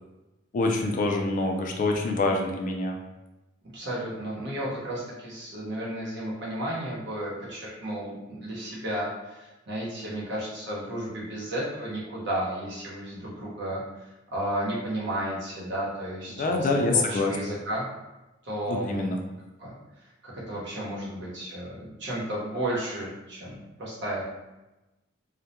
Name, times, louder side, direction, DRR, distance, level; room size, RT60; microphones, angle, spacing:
voice 1, 0.5-3.0 16.4-17.3 18.7-19.2, left 2 dB, 40° left, 2 dB, 0.3 m, -25 dB
voice 2, 3.7-13.8 14.3-17.8 18.4-19.1 19.6-19.7 20.2-24.2, right 1 dB, 60° right, -6 dB, 0.9 m, -33 dB
2.2 x 2.1 x 2.8 m, 1.0 s
head